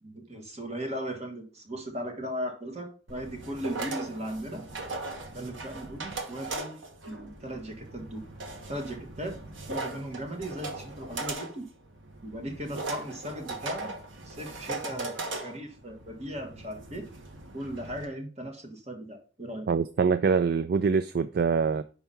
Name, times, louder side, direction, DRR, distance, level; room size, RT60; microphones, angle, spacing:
voice 1, 0.0-4.7 5.3-8.2 8.7-9.4 9.7-11.7 12.2-13.9 14.2-17.1 17.5-19.7, equal, 35° right, 1.7 m, -37 dB
sound 1, 3.1-18.1, right 3 dB, 90° right, 1.3 m, -39 dB
voice 2, 19.7-21.8, right 5 dB, 55° right, 0.3 m, -24 dB
5.5 x 4.7 x 5.7 m
head